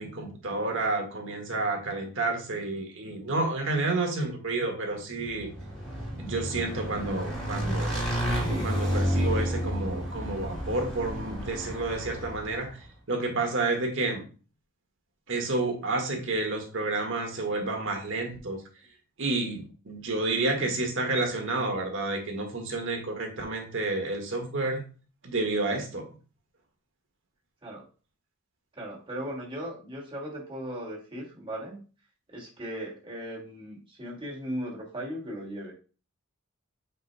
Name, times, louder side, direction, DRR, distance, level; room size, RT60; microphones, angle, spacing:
voice 1, 0.0-5.5 6.2-8.1 8.6-12.7 13.1-14.2 15.3-18.6 19.2-24.8 25.2-26.0, right 2 dB, 60° right, 2 dB, 1.7 m, -30 dB
Motorcycle / Engine, 5.3-12.7, equal, ahead, 3.1 m, -31 dB
voice 2, 20.3-20.7 27.6-27.8 28.8-31.8 32.3-35.7, equal, 25° right, -3 dB, 2.1 m, -37 dB
8.0 x 5.2 x 2.2 m, 0.35 s
head